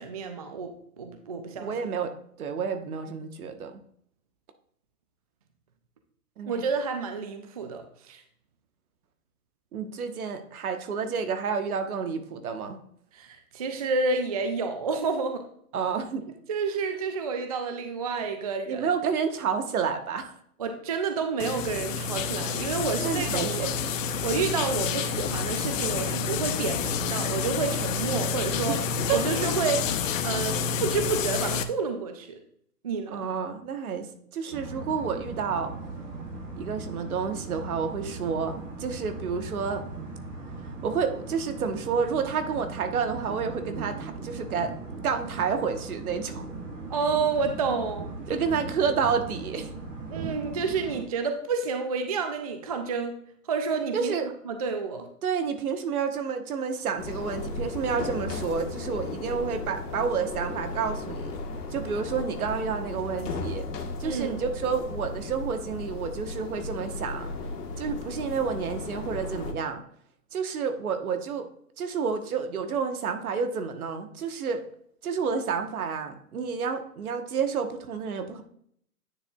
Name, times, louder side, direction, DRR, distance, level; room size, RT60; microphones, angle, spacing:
voice 1, 0.0-1.7 6.4-8.2 13.1-15.5 16.5-18.9 20.6-23.7 24.2-28.8 29.1-32.4 32.8-33.3 46.9-48.1 50.1-53.2 53.5-55.1 64.0-64.4, right 4 dB, 25° right, 6 dB, 0.4 m, -30 dB
voice 2, 1.5-2.1 2.4-3.8 6.4-6.6 9.7-12.8 15.7-16.3 18.7-20.3 23.0-23.8 28.7-28.8 29.1-29.2 33.1-35.7 36.6-39.8 40.8-44.7 45.0-46.4 48.3-49.7 53.9-54.3 55.2-61.3 61.7-63.6 64.0-67.3 67.8-69.8 70.3-71.5 71.8-74.6 75.0-78.4, right 6 dB, 65° right, 7 dB, 1.3 m, -30 dB
sound 1, 21.4-31.6, left 6 dB, 55° left, 0.8 m, -29 dB
sound 2, 34.5-51.0, right 3 dB, 80° right, 3.0 m, -39 dB
sound 3, 57.0-69.5, left 3 dB, 70° left, 1.7 m, -35 dB
9.7 x 6.6 x 2.3 m, 0.66 s
hypercardioid pair, 130°, 47 cm